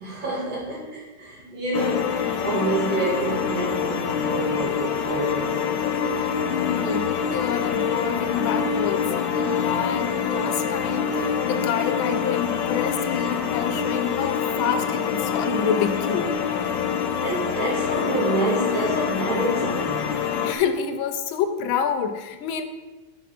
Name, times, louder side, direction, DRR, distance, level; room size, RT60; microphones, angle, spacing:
voice 1, 0.0-5.8 17.2-20.2, right 2 dB, 75° right, -6 dB, 2.6 m, -28 dB
sound 1, 1.7-20.5, left 6 dB, 70° left, 1.3 m, -25 dB
voice 2, 6.2-16.3 20.4-22.6, left 7 dB, 90° left, 8 dB, 1.6 m, -28 dB
10.5 x 4.3 x 5.1 m, 1.3 s
omnidirectional pair, 2.2 m